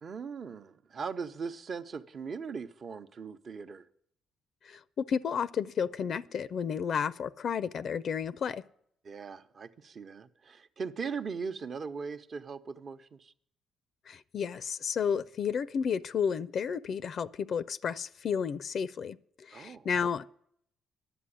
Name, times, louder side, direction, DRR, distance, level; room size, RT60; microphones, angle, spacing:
voice 1, 0.0-3.9 9.0-13.3 19.5-19.9, right 5 dB, 50° right, 0.9 m, -39 dB
voice 2, 4.6-8.6 14.1-20.3, left 7 dB, 60° left, 0.4 m, -32 dB
11.0 x 7.9 x 9.9 m
cardioid pair, 90°, 0 cm